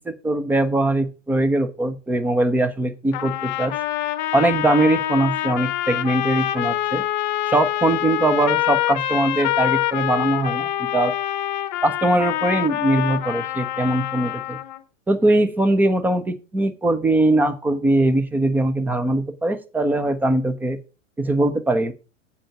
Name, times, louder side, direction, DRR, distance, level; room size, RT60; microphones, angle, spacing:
voice 1, 0.1-3.7 4.3-7.0 7.5-11.1 11.8-14.6 15.1-20.8 21.2-21.9, right 2 dB, 5° right, 10 dB, 0.5 m, -21 dB
sound 1, 3.1-14.8, left 13 dB, 40° left, 0.8 m, -25 dB
8.2 x 7.6 x 4.8 m, 0.33 s
figure-of-eight pair, 105°, 37 cm